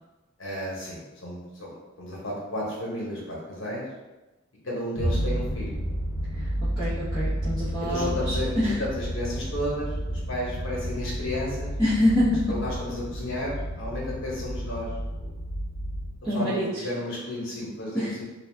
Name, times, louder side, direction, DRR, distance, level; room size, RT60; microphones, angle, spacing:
voice 1, 0.4-3.8 4.6-5.7 7.8-11.7 12.5-15.3 16.3-18.2, left 1 dB, 65° left, -4 dB, 0.9 m, -33 dB
sound 1, 5.0-16.1, equal, 30° left, 1.1 m, -31 dB
voice 2, 6.8-8.4 8.6-8.8 11.8-12.4 16.2-16.8 17.9-18.1, left 1 dB, 5° right, -17 dB, 0.8 m, -25 dB
2.3 x 2.3 x 3.3 m, 1.1 s
head